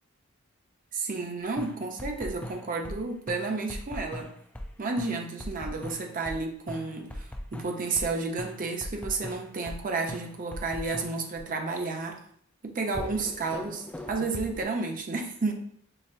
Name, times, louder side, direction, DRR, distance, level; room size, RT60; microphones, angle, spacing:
voice 1, 0.9-4.3 4.8-12.2 12.6-15.5, right 3 dB, 40° right, 3 dB, 0.6 m, -31 dB
sound 1, 1.6-3.0 3.3-4.7 5.0-8.1 8.4-9.8 10.1-11.4 12.9-14.6, left 1 dB, 5° left, 0.3 m, -39 dB
5.7 x 2.1 x 2.6 m, 0.63 s
head